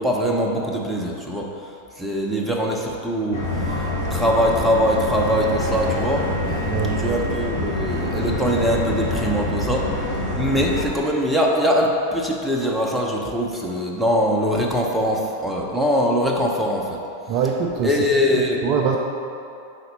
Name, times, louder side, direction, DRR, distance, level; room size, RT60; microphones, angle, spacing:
voice 1, 0.0-1.5 2.0-6.3 7.0-9.9 10.4-17.0 17.8-18.7, equal, 5° right, -2 dB, 0.8 m, -22 dB
Subway metro underground, 3.3-10.8, left 1 dB, 75° left, 1.5 m, -26 dB
voice 2, 6.6-7.2 17.3-18.1 18.3-19.0, right 6 dB, 40° right, 1 dB, 0.4 m, -24 dB
5.0 x 4.0 x 5.5 m, 2.7 s
figure-of-eight pair, 90°, 0 cm